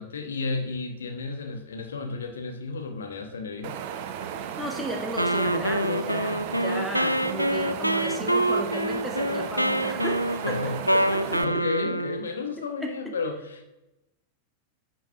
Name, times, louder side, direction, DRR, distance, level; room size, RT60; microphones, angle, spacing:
voice 1, 0.0-3.8 10.5-10.8 11.2-13.6, left 4 dB, 70° left, 6 dB, 1.1 m, -33 dB
Wind, 3.6-11.4, right 8 dB, 50° right, 0.7 m, -35 dB
voice 2, 4.3-11.6 12.8-13.1, equal, ahead, 1 dB, 1.6 m, -35 dB
Wind instrument woodwind instrument, 5.2-12.3, right 1 dB, 90° right, 0.3 m, -26 dB
10.0 x 6.0 x 3.4 m, 0.96 s
figure-of-eight pair, 90°, 0 cm